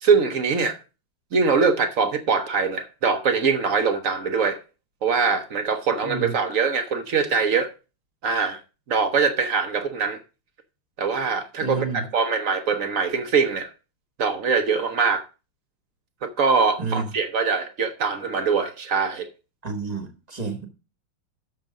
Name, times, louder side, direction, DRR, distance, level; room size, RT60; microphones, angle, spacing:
voice 1, 0.0-0.8 1.3-4.6 5.0-7.7 8.2-8.6 8.9-10.2 11.0-13.7 14.2-15.2 16.2-19.3, right 5 dB, 65° right, 0.8 m, -23 dB
voice 2, 6.0-6.4 11.6-12.0 16.8-17.0 19.6-20.7, right 4 dB, 25° right, 1.0 m, -30 dB
6.8 x 6.1 x 6.1 m
omnidirectional pair, 2.4 m